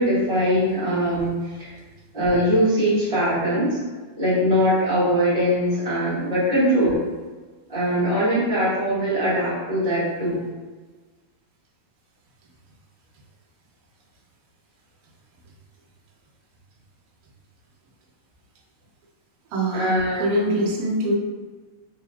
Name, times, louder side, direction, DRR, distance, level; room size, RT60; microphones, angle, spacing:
voice 1, 0.0-1.7 2.1-3.8 4.2-7.0 7.7-10.4 19.7-20.7, equal, 35° right, -12 dB, 0.5 m, -22 dB
voice 2, 19.5-21.1, right 1 dB, 70° right, -3 dB, 1.8 m, -24 dB
4.7 x 2.8 x 2.3 m, 1.3 s
omnidirectional pair, 3.5 m